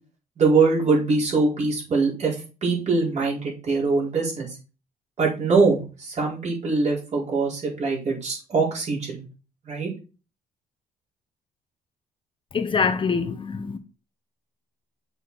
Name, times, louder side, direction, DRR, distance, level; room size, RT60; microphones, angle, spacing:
voice 1, 0.4-4.5 5.2-9.2 9.6-9.9, right 4 dB, 45° right, 4.5 m, -23 dB
voice 2, 12.5-13.8, left 5 dB, 30° left, 1.0 m, -24 dB
7.0 x 6.4 x 4.1 m
cardioid pair, 125°, 16 cm